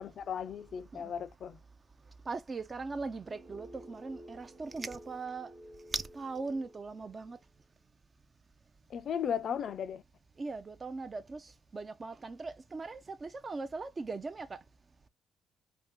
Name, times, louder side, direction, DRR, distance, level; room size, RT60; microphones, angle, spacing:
voice 1, 0.0-1.6 8.9-10.0, left 8 dB, 60° left, 0.3 m, -36 dB
voice 2, 2.3-5.5 5.9-7.4 10.4-14.6, right 3 dB, 35° right, 0.3 m, -39 dB
sound 1, 3.2-7.4, equal, 20° right, 0.9 m, -53 dB
2.6 x 2.2 x 3.4 m
supercardioid pair, 75°, 0 cm